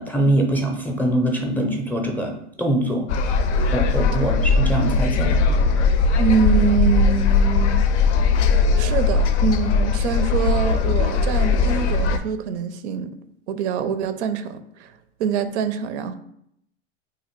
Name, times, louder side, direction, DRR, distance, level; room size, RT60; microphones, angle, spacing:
voice 1, 0.0-2.3 2.6-3.1 3.7-5.4, right 1 dB, 5° left, 0 dB, 0.4 m, -23 dB
sound 1, 3.1-12.2, left 4 dB, 90° left, 0.5 m, -19 dB
voice 2, 6.2-7.8 8.7-13.1 13.5-14.9 15.2-16.1, right 7 dB, 80° right, 10 dB, 0.5 m, -24 dB
2.9 x 2.5 x 4.3 m, 0.74 s
supercardioid pair, 115°, 34 cm